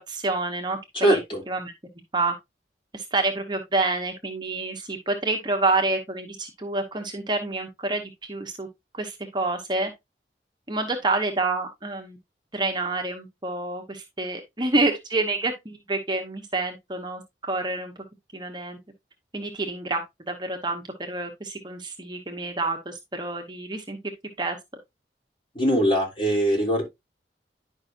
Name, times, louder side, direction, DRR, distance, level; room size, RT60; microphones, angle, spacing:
voice 1, 0.1-1.2 1.5-1.7 2.1-2.3 2.9-8.7 8.9-9.9 10.7-12.2 12.5-17.9 18.3-18.8 19.3-20.0 20.3-24.0 24.4-24.6, right 2 dB, 25° right, 1.1 m, -28 dB
voice 2, 0.9-1.4 25.5-26.8, right 1 dB, 30° left, 3.3 m, -22 dB
10.5 x 5.4 x 2.6 m
head